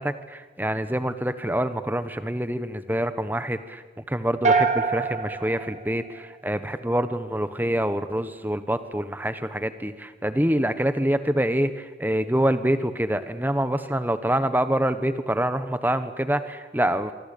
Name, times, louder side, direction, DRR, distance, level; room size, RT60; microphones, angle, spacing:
voice 1, 0.0-3.8 4.1-17.1, right 1 dB, 10° right, 11 dB, 1.3 m, -26 dB
sound 1, 4.4-6.7, right 4 dB, 40° right, 2.2 m, -25 dB
25.0 x 25.0 x 8.6 m, 1.3 s
head